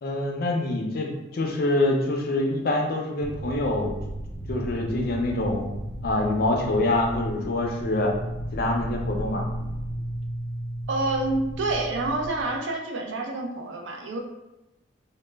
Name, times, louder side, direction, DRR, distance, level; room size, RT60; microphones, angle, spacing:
voice 1, 0.0-4.0 4.5-5.7 6.0-8.1 8.5-9.4, left 2 dB, 50° left, 1 dB, 0.4 m, -25 dB
sound 1, 3.2-12.6, right 1 dB, 20° right, 0.6 m, -34 dB
voice 2, 10.9-14.2, right 2 dB, 75° right, 2 dB, 0.4 m, -28 dB
2.1 x 2.0 x 3.3 m, 0.96 s
head